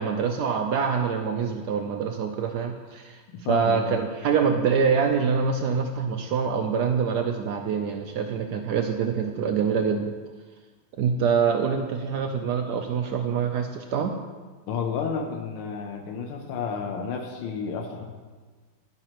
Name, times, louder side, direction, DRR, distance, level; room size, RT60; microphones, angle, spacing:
voice 1, 0.0-3.2 3.5-10.1 11.0-14.1, right 6 dB, 80° right, 5 dB, 0.9 m, -25 dB
voice 2, 3.3-4.0 14.7-18.1, left 6 dB, 80° left, 3 dB, 1.7 m, -31 dB
11.0 x 9.8 x 3.0 m, 1.4 s
omnidirectional pair, 2.3 m